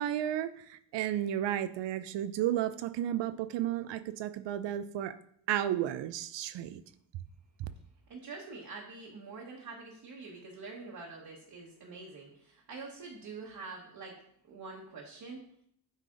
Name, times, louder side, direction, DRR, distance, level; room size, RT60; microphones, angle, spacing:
voice 1, 0.0-5.2 5.5-6.8 7.6-7.7, right 11 dB, 75° right, 0.5 m, -33 dB
voice 2, 8.1-14.2 14.5-15.4, right 4 dB, 55° right, 1.4 m, -45 dB
9.2 x 3.3 x 3.8 m
cardioid pair, 65°, 43 cm